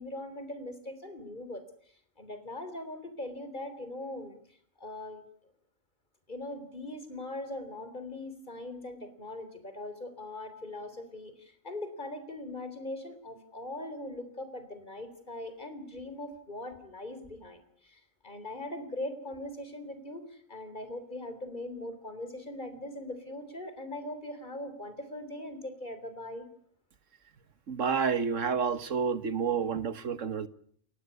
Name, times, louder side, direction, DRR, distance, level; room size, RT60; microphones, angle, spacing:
voice 1, 0.0-1.6 2.2-4.4 4.8-5.2 6.3-26.5, left 1 dB, 35° left, 3.9 m, -41 dB
voice 2, 27.7-30.5, right 6 dB, 75° right, 1.7 m, -29 dB
30.0 x 15.0 x 9.7 m
omnidirectional pair, 1.3 m